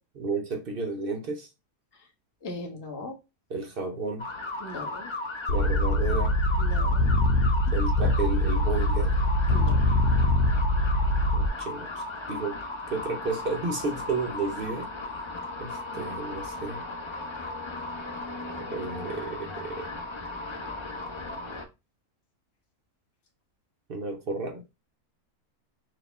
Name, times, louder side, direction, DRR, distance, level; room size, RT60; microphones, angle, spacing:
voice 1, 0.1-1.5 3.5-4.3 5.5-6.4 7.7-9.2 11.3-12.0 12.3-12.6 12.9-14.9 15.6-16.8 18.7-19.9 23.9-24.6, right 3 dB, 55° right, 0.6 m, -32 dB
voice 2, 2.4-3.1 4.6-5.1 6.6-7.1 9.5-9.7, left 2 dB, 20° left, 0.8 m, -38 dB
sound 1, 4.2-21.7, left 2 dB, 45° left, 0.3 m, -36 dB
sound 2, 5.5-11.5, left 1 dB, 75° left, 1.1 m, -23 dB
4.2 x 2.8 x 3.4 m
omnidirectional pair, 1.7 m